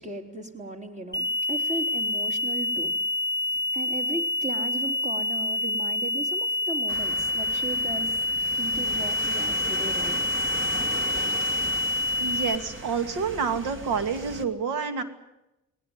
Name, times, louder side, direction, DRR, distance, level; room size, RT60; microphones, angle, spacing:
voice 1, 0.0-3.0 3.5-8.1 8.6-10.2, right 2 dB, 25° right, 5 dB, 3.7 m, -36 dB
sound 1, 1.1-12.6, left 1 dB, 10° left, 1.6 m, -27 dB
sound 2, 6.9-14.4, right 2 dB, 40° right, 2.4 m, -37 dB
voice 2, 12.2-15.0, right 5 dB, 90° right, 9 dB, 2.4 m, -28 dB
19.5 x 18.5 x 9.7 m, 0.92 s
cardioid pair, 90°, 30 cm